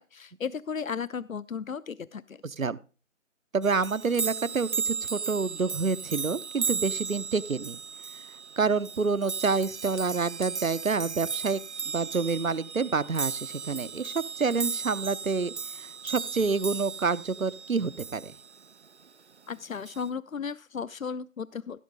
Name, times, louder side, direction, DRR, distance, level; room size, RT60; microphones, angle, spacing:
voice 1, 0.0-2.4 19.5-21.8, left 6 dB, 85° left, 18 dB, 0.6 m, -35 dB
voice 2, 3.5-7.8 8.6-11.6 11.9-18.3, right 4 dB, 85° right, 18 dB, 0.8 m, -28 dB
sound 1, 3.6-18.6 19.9-20.1, right 5 dB, 60° right, 0.5 m, -35 dB
16.0 x 6.6 x 3.7 m, 0.34 s
figure-of-eight pair, 160°, 40 cm